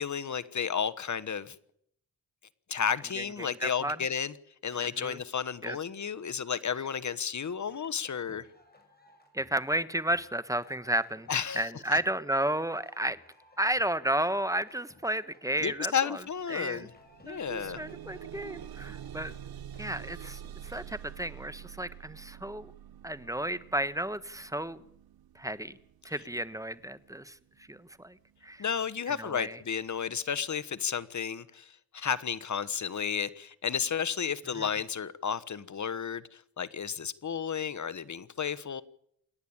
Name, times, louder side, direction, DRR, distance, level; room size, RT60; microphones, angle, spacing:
voice 1, 0.0-1.6 2.7-4.3 4.6-8.5 11.3-12.0 15.6-16.9 17.2-17.8 28.6-38.8, left 7 dB, 50° left, 14 dB, 1.3 m, -32 dB
voice 2, 3.2-4.0 4.8-5.2 5.6-5.8 9.3-11.3 11.6-13.2 13.6-16.2 16.5-16.9 17.3-19.3 19.8-22.7 23.0-24.8 25.3-25.8 26.0-27.4 27.7-28.2 28.4-28.6 29.2-29.6 34.6-34.7, right 1 dB, 10° right, 15 dB, 1.3 m, -32 dB
sound 1, 7.7-20.7, left 1 dB, 25° left, 6.4 m, -61 dB
sound 2, 16.3-16.4 16.8-27.8 28.6-28.7 29.1-29.2, right 10 dB, 80° right, 0.8 m, -47 dB
28.0 x 10.5 x 8.8 m, 0.70 s
cardioid pair, 65°, 36 cm